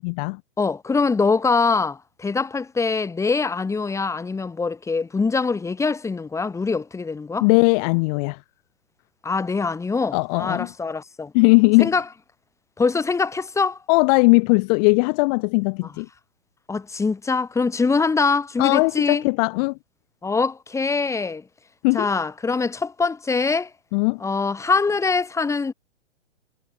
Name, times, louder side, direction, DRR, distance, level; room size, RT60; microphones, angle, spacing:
voice 1, 0.0-0.4 7.4-8.4 10.1-10.7 11.3-11.9 13.9-16.1 18.6-19.8 21.8-22.1 23.9-24.2, left 31 dB, 30° left, 2.8 m, -19 dB
voice 2, 0.6-7.5 9.2-11.3 11.8-12.0 12.8-13.8 16.7-19.2 20.2-21.4 21.9-23.7 24.2-25.7, left 4 dB, 10° left, 5.8 m, -23 dB
figure-of-eight pair, 120°, 38 cm